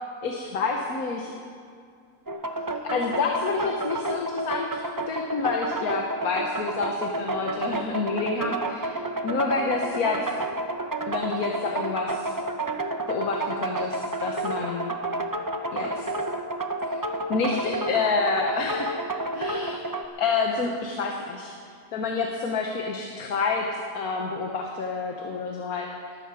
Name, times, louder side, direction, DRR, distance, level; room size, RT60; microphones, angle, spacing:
voice 1, 0.2-1.3 2.9-10.3 11.1-12.3 13.1-14.9 15.7-16.1 16.9-17.0 17.3-19.0 19.3-19.8 20.2-21.5 21.9-26.2, left 4 dB, 80° left, 2 dB, 1.6 m, -28 dB
sound 1, 2.3-20.0, right 2 dB, 25° right, 0.5 m, -31 dB
18.5 x 13.0 x 4.8 m, 2.3 s
omnidirectional pair, 1.5 m